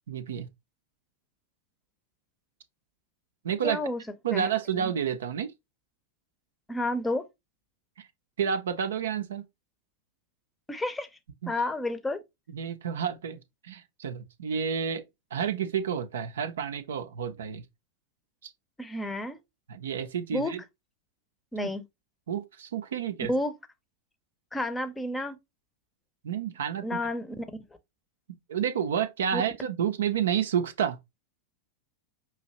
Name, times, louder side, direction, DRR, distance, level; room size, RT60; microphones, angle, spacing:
voice 1, 0.1-0.5 3.4-3.8 4.2-5.5 8.0-8.1 8.4-9.5 11.4-11.5 12.5-15.0 15.3-17.6 18.4-18.5 19.7-20.6 21.6-21.7 22.3-23.3 26.2-26.9 28.3-31.0, right 8 dB, 65° right, 0.6 m, -30 dB
voice 2, 3.6-4.0 4.3-4.5 4.7-4.9 6.7-7.2 10.7-11.1 11.5-12.2 18.8-19.4 20.3-20.5 21.5-21.8 23.3-23.5 24.5-25.4 26.8-27.4 29.3-29.4, left 1 dB, 10° left, 0.7 m, -30 dB
5.6 x 2.9 x 2.9 m
figure-of-eight pair, 90°, 0 cm